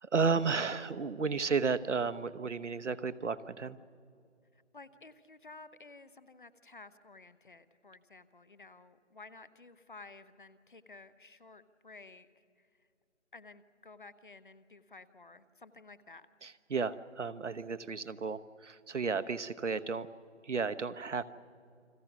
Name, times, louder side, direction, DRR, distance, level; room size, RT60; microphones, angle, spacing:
voice 1, 0.0-3.8 16.4-20.1 20.4-21.2, right 5 dB, 70° right, 13 dB, 1.1 m, -33 dB
voice 2, 4.5-12.3 12.6-12.9 13.3-16.3, left 3 dB, 45° left, 15 dB, 0.9 m, -54 dB
29.5 x 22.5 x 6.1 m, 2.4 s
figure-of-eight pair, 175°, 36 cm